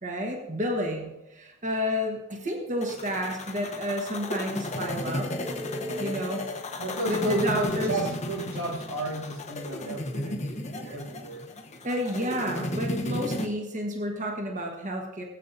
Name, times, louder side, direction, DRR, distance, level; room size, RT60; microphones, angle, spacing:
voice 1, 0.0-5.3 6.0-6.4 7.1-7.9 11.8-15.2, equal, 35° right, 1 dB, 1.4 m, -30 dB
sound 1, 2.8-13.5, left 1 dB, 35° left, 0.9 m, -34 dB
voice 2, 5.9-6.2 6.8-11.5, right 2 dB, 85° right, 0 dB, 1.9 m, -33 dB
18.5 x 8.5 x 2.7 m, 0.94 s
head